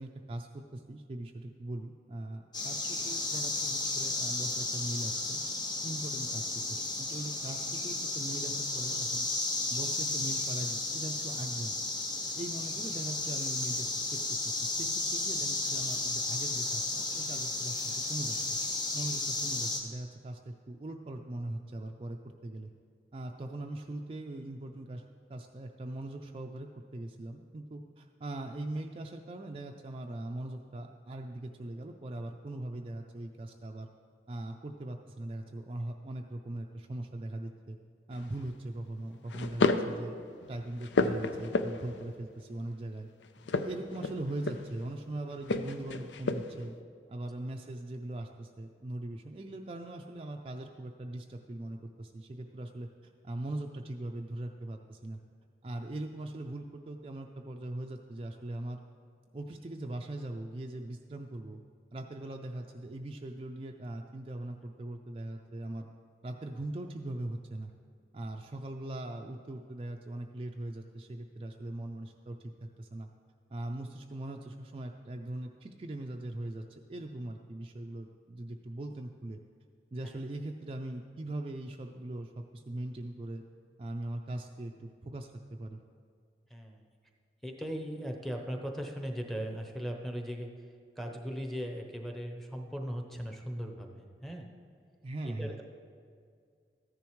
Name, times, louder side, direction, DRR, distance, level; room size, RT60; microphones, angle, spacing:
voice 1, 0.0-5.4 5.8-9.3 9.7-11.8 12.3-13.9 14.1-14.2 14.4-18.6 18.9-22.7 23.1-25.0 25.3-33.9 34.3-37.8 38.1-40.1 40.5-43.1 43.5-46.8 47.1-55.2 55.6-58.8 59.3-61.6 61.9-65.9 66.2-67.7 68.1-73.1 73.5-79.4 79.9-83.4 83.8-85.8 95.0-95.6, right 1 dB, 30° right, 3 dB, 0.4 m, -40 dB
sound 1, 2.5-19.8, left 2 dB, 25° left, 1.0 m, -33 dB
sound 2, 38.1-38.5 39.3-40.0 40.4-42.1 43.4-44.8 45.4-46.6, left 3 dB, 90° left, 0.5 m, -31 dB
voice 2, 86.5-86.8 87.4-94.5 95.2-95.6, equal, ahead, 2 dB, 0.8 m, -39 dB
14.0 x 10.5 x 3.1 m, 2.2 s
head